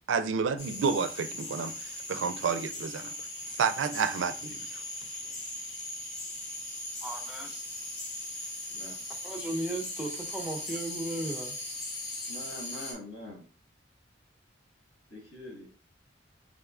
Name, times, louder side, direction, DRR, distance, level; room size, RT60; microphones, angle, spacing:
voice 1, 0.1-1.7 2.1-3.1 3.6-4.6, right 6 dB, 85° right, 0.4 m, -29 dB
sound 1, 0.6-12.9, left 1 dB, 90° left, 1.7 m, -39 dB
voice 2, 7.0-7.7 9.2-11.6, right 2 dB, 5° right, 0.4 m, -36 dB
voice 3, 12.3-13.5 15.1-15.8, left 1 dB, 70° left, 1.7 m, -44 dB
3.7 x 3.4 x 2.4 m
head